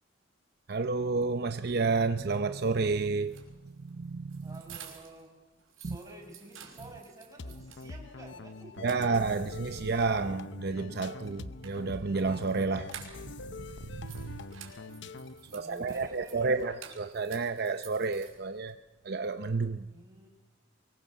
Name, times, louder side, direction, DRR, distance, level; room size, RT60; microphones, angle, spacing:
voice 1, 0.7-3.4 3.8-4.5 5.8-6.0 8.8-12.9 13.6-14.5 15.5-18.8 19.0-19.9, right 4 dB, 50° right, 0.7 m, -30 dB
sound 1, 3.2-5.3 5.6-7.9 8.3-8.4 8.7-9.6 11.2-13.5 13.8-18.7, right 8 dB, 85° right, 5.6 m, -51 dB
voice 2, 4.4-5.4 5.8-8.9 15.3-16.5 19.9-20.3, right 2 dB, 15° right, 5.8 m, -50 dB
sound 2, 7.4-15.5, left 3 dB, 60° left, 0.8 m, -44 dB
24.0 x 22.5 x 7.4 m
head